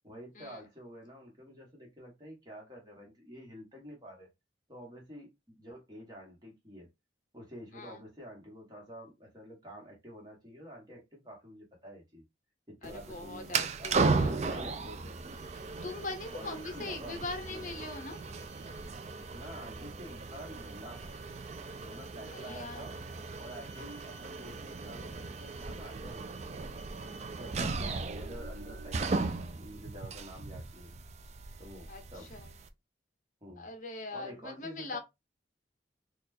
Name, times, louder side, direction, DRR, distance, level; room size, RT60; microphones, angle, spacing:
voice 1, 0.0-4.3 4.7-6.9 7.3-12.2 12.7-15.2 15.7-16.0 16.3-17.2 17.5-17.7 19.3-21.2 21.8-23.0 23.4-26.6 27.4-31.0 31.6-32.3 33.4-33.7 34.1-35.0, equal, 25° right, 1.3 m, -48 dB
voice 2, 12.8-14.7 15.5-18.2 22.3-22.9 31.9-32.5 33.6-35.0, left 3 dB, 45° left, 0.7 m, -42 dB
sound 1, 12.8-32.7, right 4 dB, 40° right, 0.4 m, -36 dB
4.2 x 2.4 x 2.6 m
head